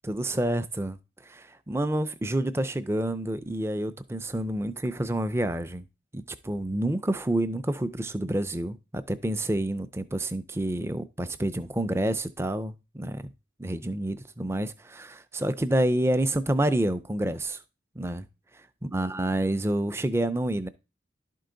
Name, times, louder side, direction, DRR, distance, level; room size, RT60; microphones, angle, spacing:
voice 1, 0.0-1.0 1.2-5.8 6.1-13.3 13.6-17.6 18.0-18.3 18.8-20.7, right 1 dB, 15° right, 0.4 m, -28 dB
11.5 x 4.6 x 3.9 m
head